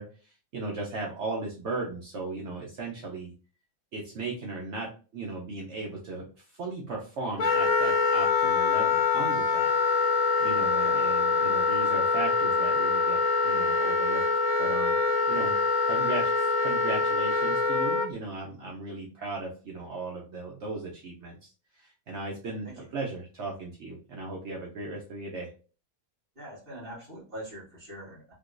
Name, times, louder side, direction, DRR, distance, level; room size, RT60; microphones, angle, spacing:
voice 1, 0.0-3.3 3.9-9.8 10.4-15.0 15.2-15.6 15.8-21.5 21.8-25.5, right 3 dB, 60° right, -1 dB, 0.9 m, -37 dB
Wind instrument woodwind instrument, 7.4-18.1, left 4 dB, 85° left, 1.1 m, -24 dB
voice 2, 26.4-28.3, right 1 dB, 40° right, -6 dB, 1.9 m, -43 dB
3.6 x 2.9 x 2.4 m, 0.37 s
omnidirectional pair, 1.5 m